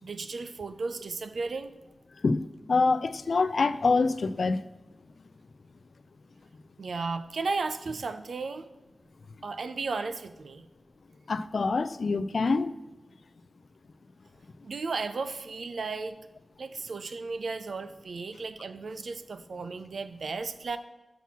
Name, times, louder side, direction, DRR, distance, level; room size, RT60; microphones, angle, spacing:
voice 1, 0.0-1.7 6.8-8.7 9.4-10.7 14.6-16.2 16.6-20.8, right 4 dB, 80° right, 0.5 m, -34 dB
voice 2, 2.7-4.6 11.3-12.7, left 4 dB, 70° left, 0.3 m, -25 dB
5.9 x 5.8 x 5.9 m
wide cardioid pair, 80°, 0 cm